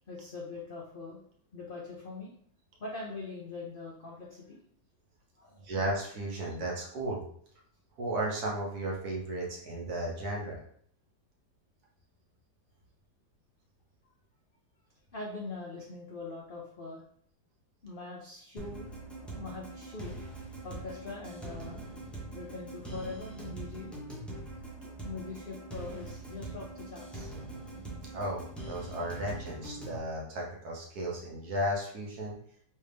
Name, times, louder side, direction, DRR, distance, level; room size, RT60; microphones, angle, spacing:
voice 1, 0.1-1.2 1.5-2.3 2.8-4.6 5.4-5.6 15.1-17.0 17.8-20.2 20.6-21.8 22.3-24.0 24.8-27.3, left 3 dB, 70° left, -3 dB, 0.5 m, -42 dB
voice 2, 5.6-7.2 8.0-10.6 28.1-32.4, right 1 dB, 65° right, -2 dB, 1.4 m, -34 dB
sound 1, 18.6-30.0, right 2 dB, ahead, 0.4 m, -43 dB
3.5 x 3.3 x 3.3 m, 0.62 s
omnidirectional pair, 1.9 m